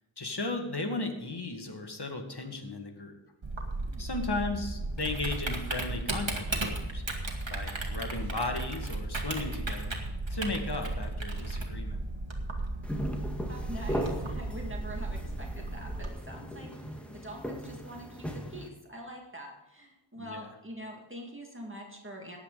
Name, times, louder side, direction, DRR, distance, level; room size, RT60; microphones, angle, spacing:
voice 1, 0.2-3.2 4.0-7.0 7.5-10.0 10.3-12.0 20.2-20.5, left 2 dB, 50° left, 4 dB, 2.0 m, -35 dB
Typing, 3.4-16.1, right 2 dB, 65° right, 2.1 m, -35 dB
sound 1, 12.8-18.7, equal, ahead, 1.8 m, -38 dB
voice 2, 13.5-22.4, equal, 25° right, -1 dB, 2.2 m, -45 dB
15.0 x 10.0 x 4.0 m, 1.0 s
wide cardioid pair, 55°, 49 cm